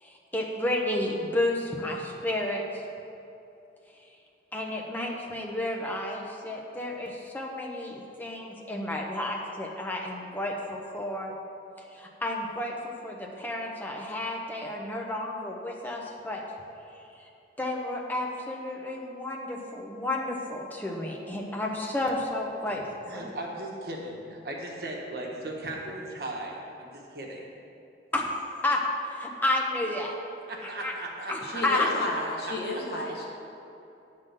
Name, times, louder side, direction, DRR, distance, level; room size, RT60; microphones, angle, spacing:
voice 1, 0.0-2.6 4.5-11.3 11.9-16.4 17.6-22.8 23.1-23.2 28.1-28.3 28.5-28.8 29.1-30.2 30.6-30.9 31.3-31.9, left 1 dB, 10° left, -1 dB, 0.7 m, -31 dB
voice 2, 23.1-27.4 30.5-31.9, right 1 dB, 60° right, -2 dB, 1.2 m, -37 dB
voice 3, 31.4-33.3, left 1 dB, 65° left, -2 dB, 1.2 m, -32 dB
9.3 x 3.8 x 6.5 m, 2.8 s
head